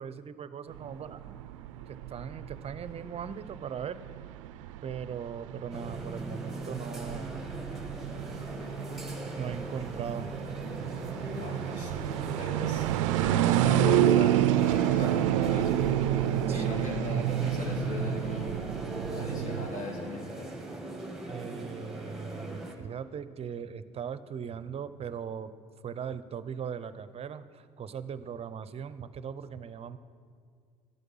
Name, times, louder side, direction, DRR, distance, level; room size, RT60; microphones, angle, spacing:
voice 1, 0.0-1.4 1.9-4.0 4.8-7.3 9.3-10.3 16.5-16.9 21.2-25.5 25.8-30.0, right 7 dB, 40° right, 14 dB, 0.6 m, -39 dB
sound 1, 0.7-19.7, right 13 dB, 85° right, 0.4 m, -29 dB
sound 2, 5.7-22.7, right 1 dB, ahead, 2.0 m, -39 dB
voice 2, 11.3-12.9 13.2-15.8 16.5-18.6 19.1-20.5, left 2 dB, 50° left, 0 dB, 2.8 m, -37 dB
12.5 x 8.1 x 5.6 m, 2.1 s
hypercardioid pair, 65°, 16 cm